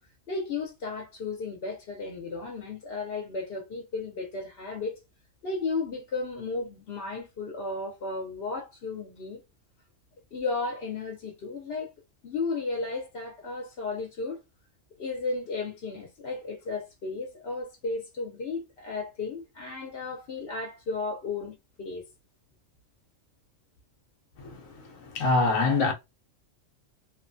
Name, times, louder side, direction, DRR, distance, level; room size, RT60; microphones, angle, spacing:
voice 1, 0.3-5.0 5.4-9.4 10.3-11.9 12.2-14.4 15.0-22.0, left 3 dB, 55° left, 0.9 m, -34 dB
voice 2, 24.4-25.9, left 3 dB, 85° left, 1.1 m, -25 dB
2.8 x 2.2 x 2.5 m
omnidirectional pair, 1.4 m